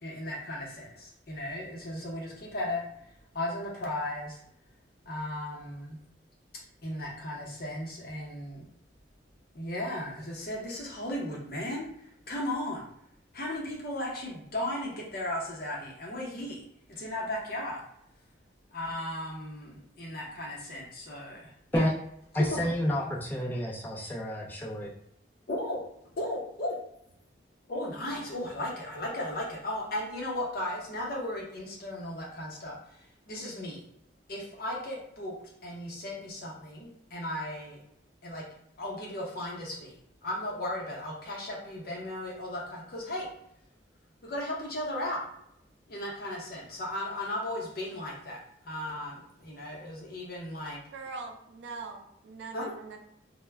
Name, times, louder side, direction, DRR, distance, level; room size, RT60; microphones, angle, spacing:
voice 1, 0.0-4.4 5.0-6.0 6.8-8.6 9.5-12.8 13.3-16.6 16.9-17.8 18.7-21.8 22.3-22.7 25.5-25.8 26.2-26.8 27.7-33.9 34.3-35.3 35.6-37.8 38.2-38.4 38.8-43.3 44.2-45.2 45.9-50.8 52.5-52.6, left 1 dB, 55° left, -3 dB, 0.7 m, -36 dB
voice 2, 22.3-24.9, equal, 10° left, -3 dB, 0.4 m, -29 dB
voice 3, 50.9-53.0, right 4 dB, 70° right, 4 dB, 0.4 m, -42 dB
2.1 x 2.1 x 3.3 m, 0.74 s
head